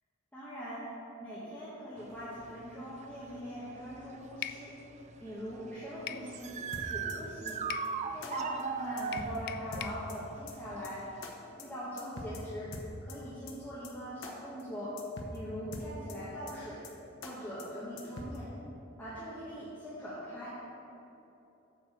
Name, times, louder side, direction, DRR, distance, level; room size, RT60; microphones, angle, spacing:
voice 1, 0.3-0.9 1.2-4.7 5.2-7.6 8.1-11.0 11.5-12.7 13.0-14.9 15.3-16.8 17.2-18.5 19.0-20.5, equal, 10° left, -11 dB, 1.3 m, -42 dB
sound 1, 2.0-11.2, right 6 dB, 35° right, 0.4 m, -40 dB
sound 2, 4.4-4.6 6.1-6.3 7.7-7.9 9.1-10.0, left 11 dB, 55° left, 0.3 m, -40 dB
sound 3, 6.7-7.2 7.5-7.6 7.8-7.9 8.2-8.3 8.6-8.7 9.0-9.4 9.7-10.2 10.5-10.6 10.8-10.9 11.2-11.3 11.6-11.7 12.0-12.4 12.7-13.2 13.5-13.6 13.8-13.9 14.2-14.3 14.6-14.7 15.0-15.4 15.7-16.2 16.5-16.6 16.8-16.9 17.2-17.3 17.6-17.7 18.0-18.4, left 3 dB, 75° left, 1.0 m, -43 dB
7.8 x 4.6 x 6.7 m, 2.9 s
head